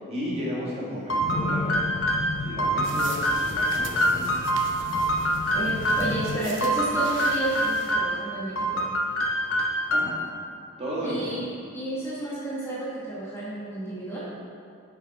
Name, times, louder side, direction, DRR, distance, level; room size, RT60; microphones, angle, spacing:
voice 1, 0.0-1.9 2.4-4.4 9.9-10.1 10.8-11.3, equal, 30° right, -6 dB, 1.7 m, -33 dB
sound 1, 1.1-6.2 6.6-8.2 8.6-10.3, equal, 65° left, 0.9 m, -25 dB
sound 2, 1.2-6.4, left 4 dB, 45° left, 0.3 m, -34 dB
sound 3, 2.8-7.9, right 5 dB, 60° right, 0.7 m, -42 dB
voice 2, 5.5-8.8 11.0-11.5 11.7-14.3, right 1 dB, 10° left, -9 dB, 1.3 m, -31 dB
6.9 x 5.8 x 4.6 m, 2.4 s
head